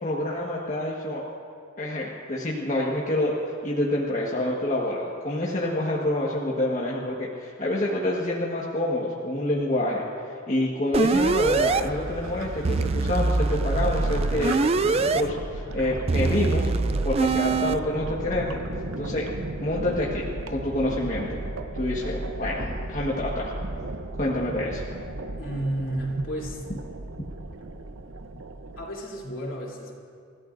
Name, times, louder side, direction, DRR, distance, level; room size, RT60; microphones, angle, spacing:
voice 1, 0.0-1.2 1.8-10.0 10.5-14.5 14.8-18.6 19.0-19.2 19.6-20.2 20.5-21.4 21.7-23.5 24.2-24.8, left 1 dB, 40° left, -4 dB, 1.5 m, -27 dB
sound 1, 10.9-11.8 12.6-15.2 16.1-17.7, right 4 dB, 30° right, 0.4 m, -23 dB
sound 2, 11.1-28.9, right 2 dB, 85° right, 0.9 m, -35 dB
voice 2, 25.4-26.6 28.8-29.9, right 1 dB, 70° left, -3 dB, 3.2 m, -32 dB
29.5 x 15.0 x 2.6 m, 2.3 s
head